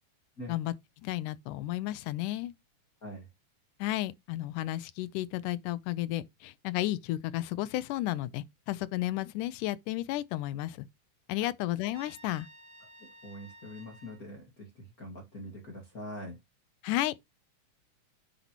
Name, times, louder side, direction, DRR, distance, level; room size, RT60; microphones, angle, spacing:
voice 1, 1.0-2.5 3.8-10.9 11.3-12.5 16.8-17.1, left 15 dB, 85° left, 2.1 m, -33 dB
Trumpet, 11.9-14.2, right 1 dB, 60° right, 3.4 m, -54 dB
voice 2, 13.2-16.4, left 1 dB, 35° left, 1.8 m, -44 dB
10.0 x 5.3 x 2.9 m
omnidirectional pair, 3.6 m